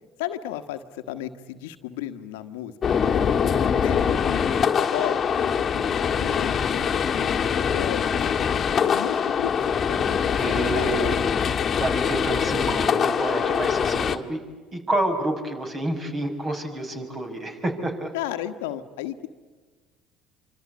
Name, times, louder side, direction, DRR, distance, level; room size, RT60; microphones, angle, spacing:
voice 1, 0.2-2.7 3.0-3.5 3.8-9.5 9.9-11.2 18.1-19.3, left 12 dB, 80° left, 8 dB, 1.4 m, -34 dB
sound 1, 2.8-14.2, left 7 dB, 40° left, 1.7 m, -23 dB
voice 2, 10.3-11.2 11.8-14.4 14.7-18.1, right 1 dB, 35° right, 5 dB, 6.4 m, -29 dB
27.0 x 25.5 x 8.6 m, 1.4 s
hypercardioid pair, 65°, 0 cm